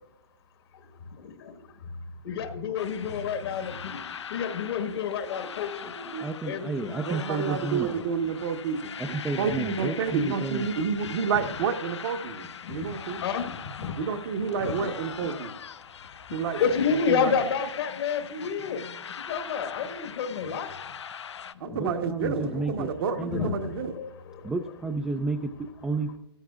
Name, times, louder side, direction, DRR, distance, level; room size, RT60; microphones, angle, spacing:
voice 1, 1.1-2.0 2.2-7.0 12.6-14.0 14.5-14.9 15.8-19.0 19.3-20.7 21.5-24.5, left 6 dB, 60° left, 1.5 m, -31 dB
sound 1, 2.8-21.5, left 7 dB, 85° left, 0.7 m, -41 dB
voice 2, 6.2-8.0 9.0-10.7 21.7-22.9 23.2-23.5 24.4-25.5 25.8-26.1, right 3 dB, 5° right, 0.4 m, -31 dB
voice 3, 7.1-13.2 14.0-15.5 16.3-16.6 16.9-17.3 21.6-23.9, right 6 dB, 55° right, 1.2 m, -30 dB
15.0 x 14.0 x 2.4 m
hypercardioid pair, 135°, 14 cm